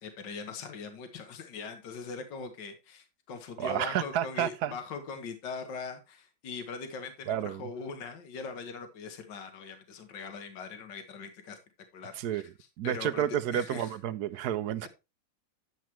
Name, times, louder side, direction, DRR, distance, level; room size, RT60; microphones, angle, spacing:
voice 1, 0.0-11.6 11.9-12.4 12.8-14.0, left 5 dB, 70° left, 2.0 m, -41 dB
voice 2, 3.6-4.7 7.3-7.6 12.2-12.4 12.8-14.9, right 10 dB, 65° right, 1.1 m, -30 dB
11.5 x 7.4 x 3.1 m
omnidirectional pair, 2.1 m